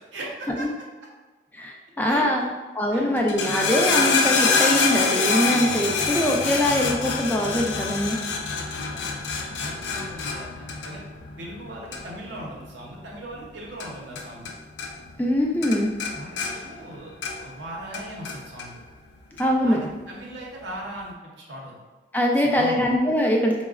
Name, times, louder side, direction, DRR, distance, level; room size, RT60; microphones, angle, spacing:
voice 1, 0.1-0.7 2.1-2.5 2.9-3.0 8.5-11.0 11.4-14.5 16.1-18.8 19.6-21.8 22.4-22.8, right 1 dB, 90° right, -3 dB, 0.7 m, -39 dB
voice 2, 1.5-2.5 2.7-8.2 15.2-15.9 19.4-19.8 22.1-23.6, equal, 10° left, 0 dB, 0.3 m, -23 dB
sound 1, 3.2-14.5 14.8-15.4 15.6-17.6 17.9-18.7 19.4-19.5, left 4 dB, 85° left, 0.4 m, -26 dB
4.7 x 2.0 x 2.3 m, 1.3 s
head